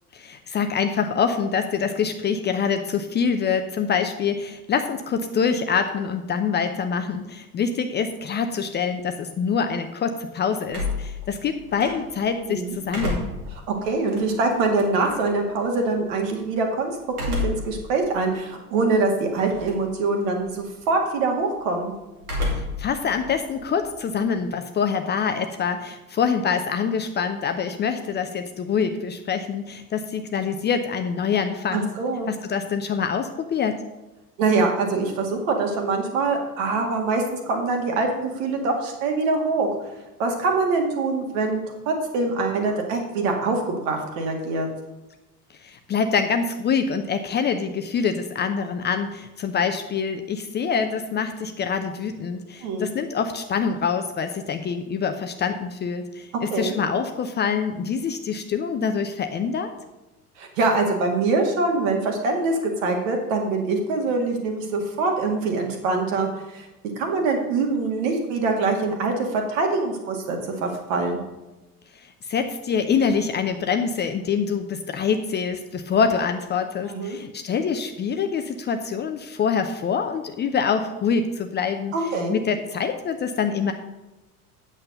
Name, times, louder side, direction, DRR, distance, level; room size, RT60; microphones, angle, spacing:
voice 1, 0.1-13.3 22.5-31.9 32.3-33.8 45.6-59.7 71.9-81.9 82.3-83.7, left 6 dB, 25° left, 7 dB, 0.6 m, -25 dB
sound 1, 10.7-12.3 12.7-15.3 17.1-17.8 18.3-18.4 19.4-19.9 20.2-20.6 22.2-22.9 23.2-24.6, left 2 dB, 75° right, 2.6 m, -30 dB
voice 2, 13.7-16.9 17.3-21.9 31.7-32.3 34.4-39.7 40.2-41.6 41.9-44.7 52.6-52.9 56.5-56.7 60.4-66.7 67.0-71.2 76.9-77.2 81.9-82.4, right 3 dB, 55° right, 2 dB, 2.3 m, -24 dB
8.8 x 7.5 x 5.3 m, 1.0 s
figure-of-eight pair, 75°, 45 cm